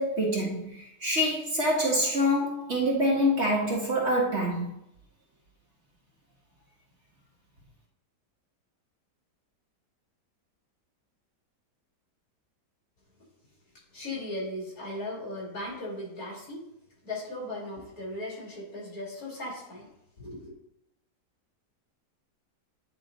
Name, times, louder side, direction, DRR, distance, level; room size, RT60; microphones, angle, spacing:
voice 1, 0.0-4.7, equal, 40° right, -3 dB, 1.6 m, -26 dB
voice 2, 13.9-16.6 17.0-19.9 20.2-20.5, left 1 dB, 55° left, -5 dB, 3.2 m, -37 dB
9.9 x 3.6 x 3.9 m, 0.79 s
omnidirectional pair, 1.8 m